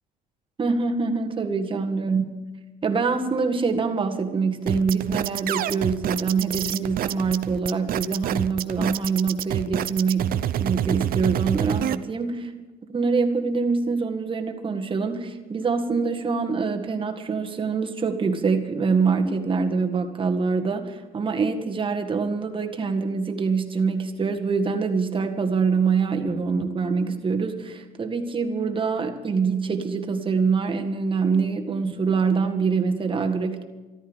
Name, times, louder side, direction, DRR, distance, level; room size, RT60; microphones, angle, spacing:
voice 1, 0.6-2.4 2.8-12.4 12.9-33.6, right 4 dB, 30° right, 4 dB, 1.8 m, -25 dB
sound 1, 4.7-11.9, right 12 dB, 60° right, 0.6 m, -27 dB
13.5 x 13.5 x 7.3 m, 1.2 s
cardioid pair, 110°, 17 cm